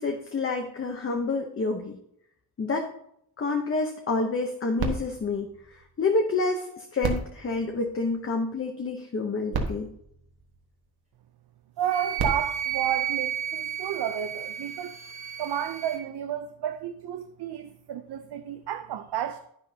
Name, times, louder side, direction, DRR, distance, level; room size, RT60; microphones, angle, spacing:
voice 1, 0.0-2.0 2.6-2.9 3.4-5.5 6.0-9.9, left 3 dB, 35° left, 3 dB, 0.9 m, -28 dB
sound 1, 4.8-6.4 7.0-8.6 9.2-9.3 9.5-11.1 11.9-13.7 14.5-14.6, right 4 dB, 70° right, 1.6 m, -35 dB
Wind instrument woodwind instrument, 11.8-16.0, right 10 dB, 20° right, 1.6 m, -32 dB
voice 2, 11.8-14.9 15.4-19.4, right 10 dB, 85° right, 7 dB, 0.7 m, -31 dB
10.5 x 10.5 x 2.8 m, 0.71 s
wide cardioid pair, 175°, 39 cm